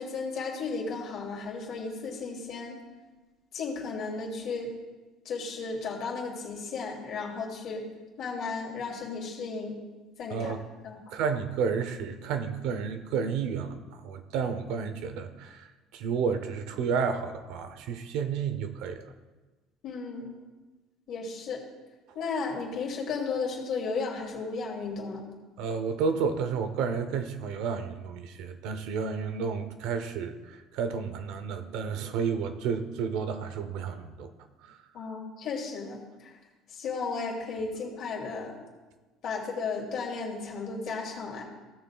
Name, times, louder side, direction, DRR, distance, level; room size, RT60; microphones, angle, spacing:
voice 1, 0.0-2.8 3.5-4.7 5.2-7.8 8.2-9.7 10.2-10.5 10.8-11.0 19.8-20.3 21.1-21.6 22.1-25.2 34.9-36.3 36.7-38.6 39.2-41.4, left 4 dB, 50° left, -1 dB, 2.5 m, -34 dB
voice 2, 11.1-13.8 14.0-15.7 15.9-19.0 25.6-34.3 34.6-34.8, right 6 dB, 70° right, 9 dB, 0.8 m, -31 dB
16.5 x 6.7 x 2.4 m, 1.2 s
cardioid pair, 140°, 0 cm